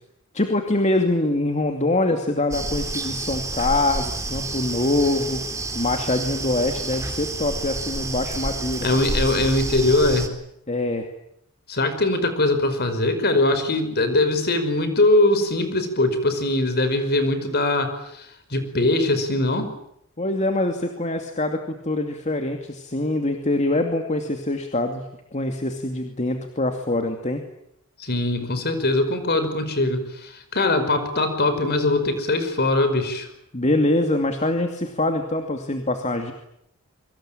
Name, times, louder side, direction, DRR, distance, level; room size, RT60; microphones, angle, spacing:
voice 1, 0.3-8.9 10.7-11.1 20.2-25.1 25.3-27.4 33.5-36.3, left 2 dB, 30° left, 5 dB, 2.5 m, -24 dB
sound 1, 2.5-10.3, right 2 dB, 15° right, 3.7 m, -29 dB
voice 2, 8.8-10.4 11.7-19.7 28.0-33.3, left 2 dB, 45° left, 10 dB, 5.3 m, -21 dB
27.0 x 24.5 x 9.0 m, 0.77 s
head